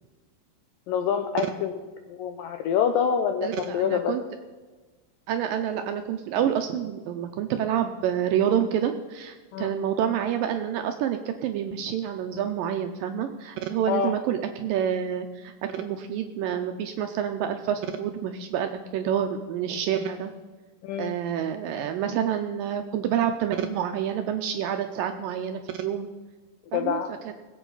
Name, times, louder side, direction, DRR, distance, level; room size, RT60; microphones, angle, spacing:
voice 1, 0.9-1.7 2.1-4.1 9.5-9.7 13.9-14.2 20.8-21.1 26.7-27.1, left 7 dB, 85° left, 7 dB, 2.0 m, -26 dB
voice 2, 3.4-4.2 5.3-20.3 21.0-26.1 26.7-27.0 27.3-27.4, right 9 dB, 80° right, 6 dB, 2.0 m, -28 dB
20.5 x 8.2 x 4.0 m, 1.3 s
omnidirectional pair, 4.6 m